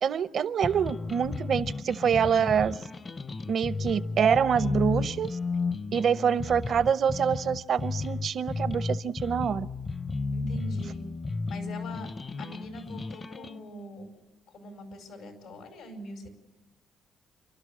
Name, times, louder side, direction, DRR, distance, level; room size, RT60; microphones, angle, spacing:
voice 1, 0.0-2.8 3.5-5.4 5.9-9.7, right 7 dB, 60° right, 16 dB, 0.7 m, -26 dB
sound 1, 0.6-13.6, left 3 dB, 30° left, 0.7 m, -33 dB
voice 2, 10.3-11.0 11.5-12.1 12.4-14.1 14.5-16.3, equal, 90° left, 5 dB, 4.9 m, -42 dB
28.5 x 12.5 x 8.6 m, 1.1 s
cardioid pair, 90°, 0 cm